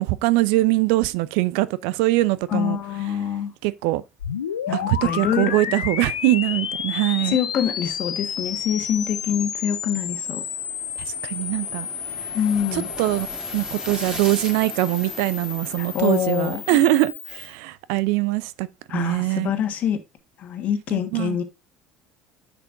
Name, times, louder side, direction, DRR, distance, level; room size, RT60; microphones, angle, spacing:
voice 1, 0.0-2.8 3.6-4.0 4.7-7.4 11.1-11.9 12.7-13.3 13.5-19.6 20.9-21.4, right 18 dB, 65° right, 0.4 m, -22 dB
voice 2, 2.5-3.5 4.7-5.6 7.3-10.4 12.3-12.9 15.8-16.6 18.9-20.0 20.4-21.4, left 9 dB, 50° left, 1.4 m, -25 dB
sound 1, 4.2-17.5, left 8 dB, 85° left, 0.5 m, -31 dB
sound 2, 5.5-16.8, right 2 dB, 20° right, 2.9 m, -42 dB
10.5 x 6.0 x 2.6 m
hypercardioid pair, 65°, 3 cm